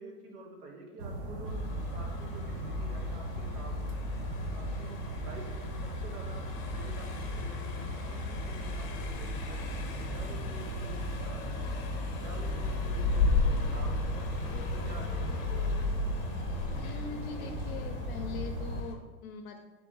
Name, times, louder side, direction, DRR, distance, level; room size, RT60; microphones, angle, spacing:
voice 1, 0.0-1.6 1.9-4.0 4.5-11.7 12.2-15.2, right 2 dB, 90° right, 1 dB, 1.1 m, -48 dB
sound 1, 1.0-18.8, right 1 dB, 45° right, 0.8 m, -37 dB
Car passing by, 1.5-18.9, left 4 dB, 40° left, 0.8 m, -36 dB
voice 2, 16.7-19.6, left 5 dB, 65° left, 4 dB, 0.6 m, -42 dB
3.8 x 3.2 x 3.8 m, 1.2 s
supercardioid pair, 155°, 46 cm